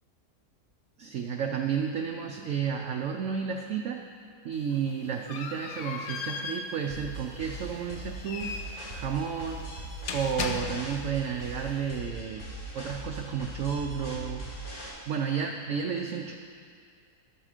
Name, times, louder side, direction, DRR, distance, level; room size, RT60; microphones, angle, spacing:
voice 1, 1.0-4.0 4.4-8.6 8.9-9.7 10.1-12.4 12.7-14.5 15.1-16.3, right 7 dB, 65° right, 3 dB, 0.8 m, -32 dB
sound 1, 4.5-11.2, left 5 dB, 80° left, 1.4 m, -38 dB
sound 2, 6.9-14.9, right 1 dB, 45° left, 2.7 m, -40 dB
12.0 x 7.8 x 5.0 m, 2.2 s
omnidirectional pair, 1.8 m